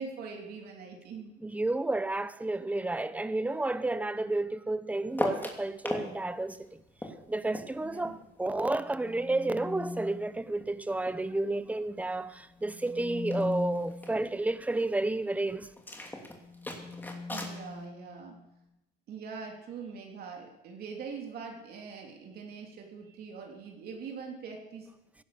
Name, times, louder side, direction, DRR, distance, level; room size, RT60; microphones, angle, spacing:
voice 1, 0.0-1.3 7.8-8.2 17.3-18.3 19.1-24.9, right 5 dB, 65° right, 3.0 m, -42 dB
voice 2, 1.4-6.8 7.3-15.7, right 2 dB, 10° right, 0.8 m, -31 dB
sound 1, 4.9-5.4 8.5-10.3 12.5-14.2 16.1-18.5, left 3 dB, 50° left, 3.2 m, -41 dB
sound 2, 5.1-6.1 6.4-9.2 9.5-11.3 11.5-12.1 12.4-12.5 12.7-12.9 13.3-14.3 15.8-17.6, left 1 dB, 10° left, 2.7 m, -39 dB
17.0 x 11.0 x 6.8 m
cardioid pair, 110°, 17 cm